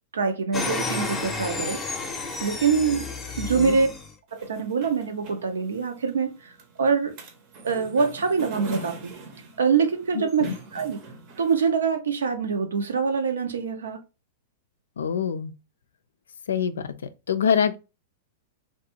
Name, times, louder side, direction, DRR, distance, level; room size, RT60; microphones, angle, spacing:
voice 1, 0.1-1.8 2.4-3.0 3.4-3.9 4.3-6.5 6.8-7.1 7.6-9.1 9.6-10.5 10.7-11.0 11.4-14.0, right 5 dB, 85° right, 0.5 m, -24 dB
sound 1, 0.5-4.1, left 3 dB, 15° left, 0.6 m, -31 dB
sound 2, 4.3-11.5, right 3 dB, 50° right, 0.7 m, -42 dB
voice 2, 10.1-10.6 15.0-15.5 16.5-16.9 17.3-17.8, left 7 dB, 85° left, 0.3 m, -25 dB
2.5 x 2.2 x 2.7 m
hypercardioid pair, 115°, 0 cm